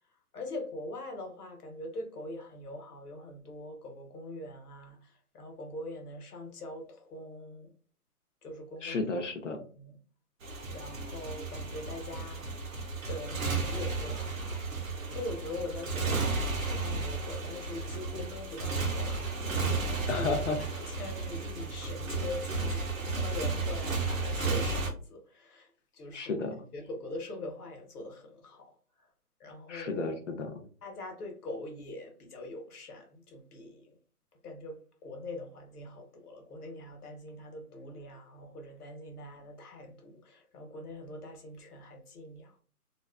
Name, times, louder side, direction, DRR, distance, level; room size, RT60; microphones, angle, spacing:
voice 1, 0.3-7.7 8.4-9.0 9.5-10.0 10.6-12.5 13.1-14.6 15.1-20.3 20.6-26.4 26.7-28.7 29.0-29.1 29.4-30.2 30.8-33.9 34.4-42.6, left 2 dB, 75° left, 1.0 m, -43 dB
voice 2, 8.8-9.6 20.1-20.6 26.1-26.5 29.7-30.6, left 3 dB, 55° left, 0.5 m, -32 dB
Motorcycle, 10.4-24.9, right 3 dB, 60° right, 0.7 m, -33 dB
2.6 x 2.4 x 2.2 m
hypercardioid pair, 180°, 46 cm